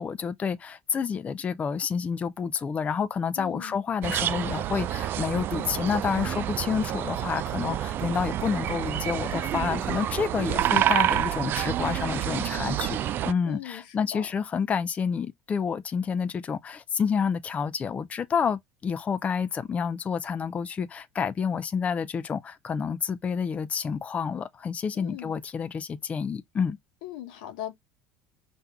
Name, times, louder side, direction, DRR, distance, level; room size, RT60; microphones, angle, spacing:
voice 1, 0.0-26.8, left 6 dB, 30° left, 0.5 m, -29 dB
voice 2, 3.4-3.8 13.4-14.2 24.9-25.3 27.0-27.7, left 12 dB, 90° left, 1.1 m, -39 dB
sound 1, 4.0-13.3, right 12 dB, 45° right, 0.4 m, -28 dB
5.6 x 2.7 x 3.4 m
supercardioid pair, 110°, 5 cm